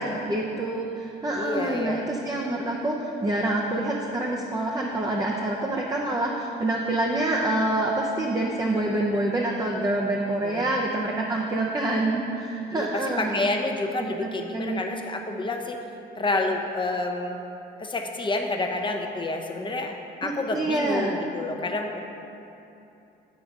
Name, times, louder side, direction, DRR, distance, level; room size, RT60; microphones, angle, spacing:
voice 1, 0.0-13.5 14.0-14.8 20.2-21.1, right 2 dB, 20° right, -2 dB, 0.7 m, -27 dB
voice 2, 1.4-2.0 10.4-10.7 12.7-15.8 16.2-17.4 17.8-22.0, left 2 dB, 25° left, 3 dB, 0.8 m, -29 dB
8.2 x 3.9 x 6.0 m, 2.8 s
cardioid pair, 90°, 20 cm